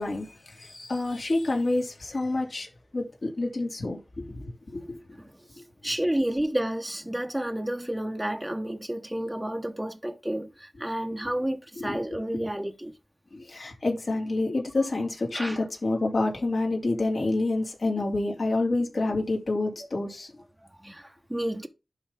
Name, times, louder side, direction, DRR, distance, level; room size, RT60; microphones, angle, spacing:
voice 1, 0.0-2.7 2.9-5.0 11.8-12.0 12.3-12.4 13.3-20.3, left 2 dB, 65° left, 2.9 m, -28 dB
voice 2, 5.2-13.0 15.3-15.6 20.8-21.7, right 1 dB, 10° right, 0.8 m, -31 dB
11.5 x 4.2 x 3.6 m
wide cardioid pair, 65°, 0 cm